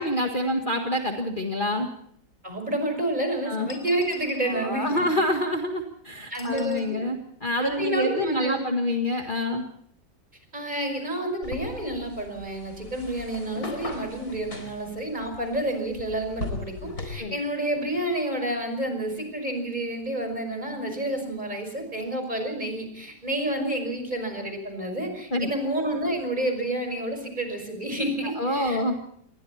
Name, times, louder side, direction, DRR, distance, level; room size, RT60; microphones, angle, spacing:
voice 1, 0.0-1.9 3.5-3.7 4.5-9.6 17.2-17.4 25.3-25.5 28.4-29.0, left 1 dB, 25° left, 3 dB, 1.8 m, -27 dB
voice 2, 2.4-4.9 6.3-7.0 7.6-8.6 10.5-28.8, right 1 dB, 20° right, 5 dB, 5.7 m, -29 dB
sound 1, 3.7-4.5 6.3-6.9, left 2 dB, 10° left, 5.3 m, -44 dB
sound 2, 11.4-17.1, left 3 dB, 50° left, 4.5 m, -38 dB
27.5 x 22.0 x 4.3 m, 0.66 s
omnidirectional pair, 2.1 m